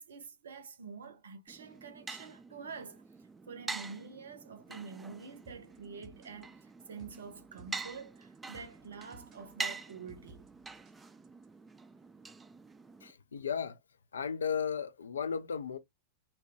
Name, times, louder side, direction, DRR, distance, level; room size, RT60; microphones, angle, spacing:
voice 1, 0.0-3.0 3.5-10.5, right 5 dB, 65° right, 0.6 m, -47 dB
sound 1, 1.5-13.1, right 4 dB, 10° right, 0.3 m, -45 dB
sound 2, 5.5-11.5, right 1 dB, 30° right, 0.7 m, -58 dB
voice 2, 13.0-13.8 14.1-15.8, left 7 dB, 70° left, 0.3 m, -35 dB
2.7 x 2.1 x 3.1 m
figure-of-eight pair, 90°, 0 cm